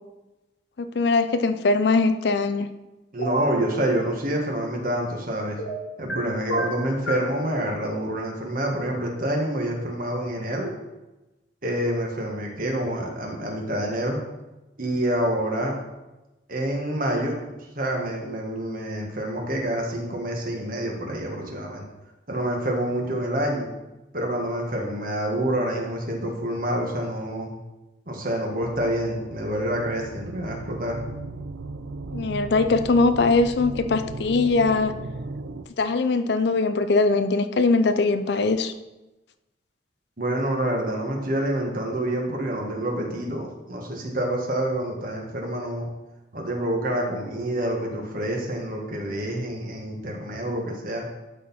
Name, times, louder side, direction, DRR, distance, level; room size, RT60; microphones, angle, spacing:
voice 1, 0.8-2.7 32.1-34.9 35.8-38.7, left 3 dB, 60° left, 10 dB, 0.5 m, -21 dB
voice 2, 3.1-5.6 6.0-10.7 11.6-14.2 14.8-15.8 16.5-17.4 17.7-21.8 22.3-23.7 24.1-27.5 28.1-31.0 40.2-45.9 46.3-51.0, right 1 dB, 50° right, 0 dB, 1.5 m, -27 dB
sound 1, 3.2-3.5 5.6-6.2 6.5-7.3, right 1 dB, 85° left, 1.5 m, -28 dB
sound 2, 28.6-35.7, right 3 dB, 80° right, 0.5 m, -36 dB
12.0 x 4.5 x 4.2 m, 1.0 s
head